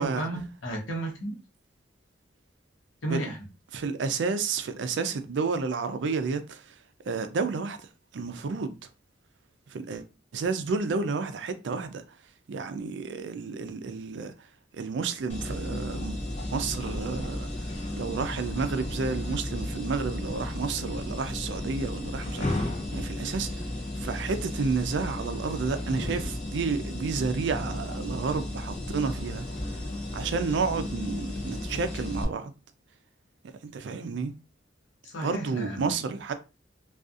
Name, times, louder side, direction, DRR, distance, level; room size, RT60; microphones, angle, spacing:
voice 1, 0.0-1.4 3.0-3.4 35.0-36.0, right 2 dB, 85° left, 0.9 m, -33 dB
voice 2, 3.7-6.7 7.1-7.8 8.1-8.7 9.7-10.0 10.3-12.0 12.5-14.3 14.7-16.2 16.5-17.5 17.9-23.5 24.0-29.5 30.1-32.5 33.6-34.3 35.2-36.3, right 4 dB, 70° right, 0.4 m, -31 dB
sound 1, 15.3-32.2, left 1 dB, 35° left, 0.6 m, -34 dB
2.6 x 2.3 x 2.4 m
head